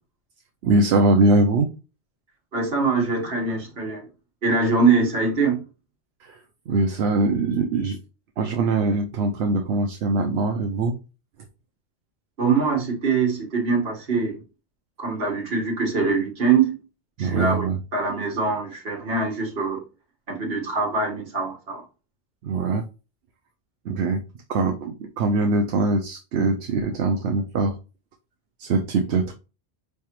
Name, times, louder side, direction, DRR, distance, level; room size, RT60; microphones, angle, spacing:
voice 1, 0.6-1.7 6.2-6.4 6.7-8.0 8.4-11.0 17.2-17.8 22.4-22.8 23.8-24.2 24.5-27.8 28.6-29.3, right 3 dB, 75° right, 0.8 m, -22 dB
voice 2, 2.5-4.1 4.4-5.6 12.4-14.4 15.0-16.7 17.2-17.6 17.9-19.8 20.3-21.8, right 4 dB, 60° right, 1.6 m, -23 dB
4.7 x 3.4 x 2.9 m
omnidirectional pair, 1.2 m